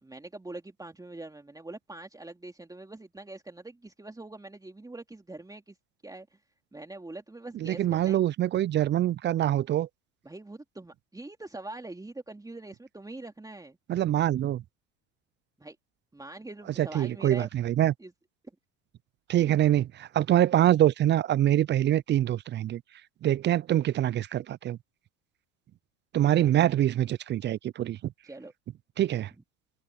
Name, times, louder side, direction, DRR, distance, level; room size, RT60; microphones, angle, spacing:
voice 1, 0.0-5.8 6.0-6.4 6.7-8.2 10.2-13.8 15.6-15.8 16.1-17.5 18.0-18.1 19.4-19.6 26.4-26.5 28.2-28.5, right 2 dB, 10° right, 3.0 m, -43 dB
voice 2, 7.6-9.9 13.9-14.6 16.8-17.9 19.3-22.8 23.2-24.8 26.1-28.1 29.0-29.3, right 12 dB, 30° right, 0.5 m, -24 dB
open air
hypercardioid pair, 75°, 39 cm